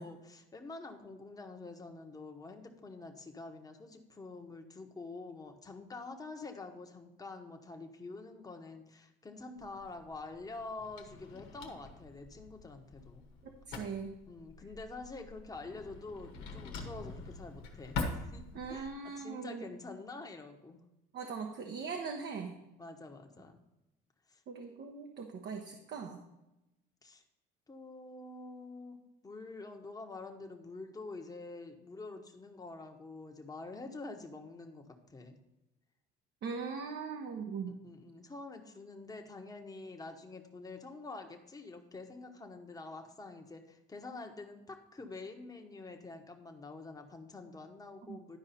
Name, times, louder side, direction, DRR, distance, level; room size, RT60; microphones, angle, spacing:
voice 1, 0.0-13.2 14.3-20.8 22.8-23.6 24.3-24.4 27.0-27.2 27.7-35.4 37.8-48.4, left 3 dB, 15° left, 3 dB, 1.1 m, -47 dB
Drawer open or close, 9.6-18.9, left 3 dB, 85° left, 1.3 m, -44 dB
voice 2, 13.4-14.2 18.5-19.6 21.1-22.6 24.5-26.2 36.4-37.8 48.1-48.2, right 5 dB, 60° right, 2 dB, 1.0 m, -40 dB
11.5 x 4.8 x 4.2 m, 0.94 s
supercardioid pair, 85°, 21 cm